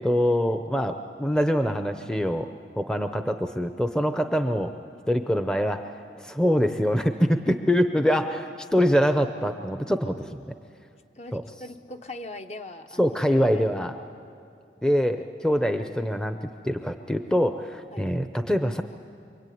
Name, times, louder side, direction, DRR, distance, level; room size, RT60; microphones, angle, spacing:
voice 1, 0.0-2.5 2.8-4.7 5.1-10.5 11.3-11.4 13.0-14.0 14.8-16.4 16.6-18.8, equal, 5° left, 7 dB, 0.7 m, -24 dB
voice 2, 11.2-13.9 17.9-18.1, left 2 dB, 40° left, 6 dB, 1.1 m, -41 dB
25.0 x 24.5 x 9.4 m, 2.5 s
head